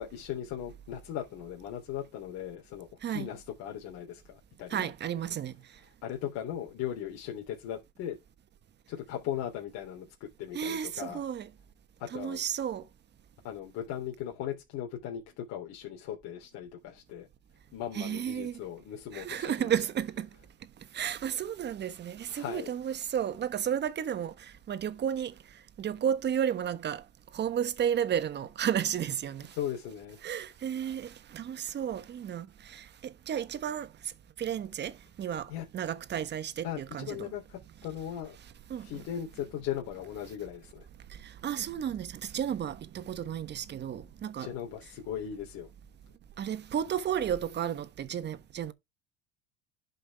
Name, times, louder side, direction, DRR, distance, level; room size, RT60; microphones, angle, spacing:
voice 1, 0.0-4.9 6.0-8.2 8.9-11.2 12.0-12.4 13.4-17.3 17.7-19.8 22.3-22.7 29.5-30.2 35.3-35.6 36.6-38.4 38.8-40.9 44.4-45.7, left 10 dB, 60° left, 3.4 m, -38 dB
voice 2, 4.7-5.5 10.5-11.5 12.1-12.8 17.9-18.6 19.1-20.3 20.9-24.3 24.7-25.3 25.8-27.0 27.3-29.5 30.2-33.9 34.4-37.3 38.7-38.9 41.2-44.5 46.4-48.7, right 9 dB, 35° right, 1.3 m, -32 dB
11.0 x 5.7 x 3.5 m
supercardioid pair, 120°, 31 cm